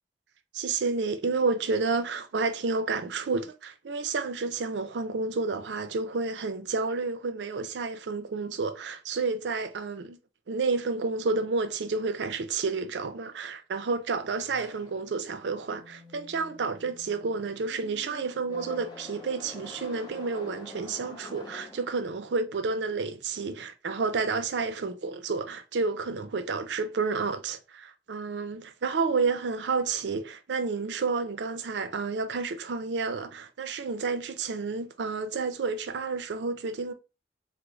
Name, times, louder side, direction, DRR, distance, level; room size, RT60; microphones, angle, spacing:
voice 1, 0.5-10.2 10.5-36.9, right 4 dB, 85° right, 0.4 m, -30 dB
sound 1, 14.4-22.4, left 3 dB, 25° left, 0.7 m, -47 dB
3.0 x 2.0 x 3.6 m
head